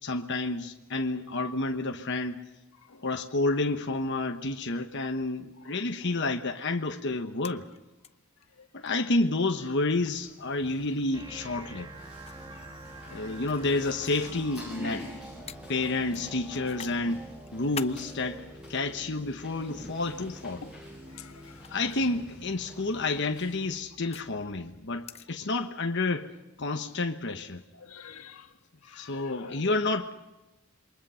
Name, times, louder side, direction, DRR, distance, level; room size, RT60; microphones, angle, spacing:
voice 1, 0.0-2.4 3.0-7.6 8.7-11.9 13.1-15.1 15.7-17.2 17.5-18.4 18.7-20.6 21.7-26.3 26.6-27.6 28.9-30.1, left 2 dB, 55° left, 1.2 m, -30 dB
sound 1, 7.4-8.1 8.4-8.5 8.9-9.0 10.0-10.3 11.4-11.5 12.2-13.6 14.0-14.2 14.5-14.7 15.5-15.6 16.1-17.0 17.4-18.0 18.8-19.6 20.6-20.9 21.5-21.7 23.0-24.3 25.0-25.3, left 7 dB, 30° left, 0.7 m, -43 dB
sound 2, 9.9-23.8, left 1 dB, 5° right, 7.9 m, -47 dB
sound 3, 11.1-25.1, right 2 dB, 20° right, 1.9 m, -48 dB
voice 2, 13.0-13.5 20.6-20.7 21.1-21.6 27.8-28.5 28.9-29.7, left 6 dB, 85° left, 1.7 m, -48 dB
28.0 x 23.0 x 5.7 m
head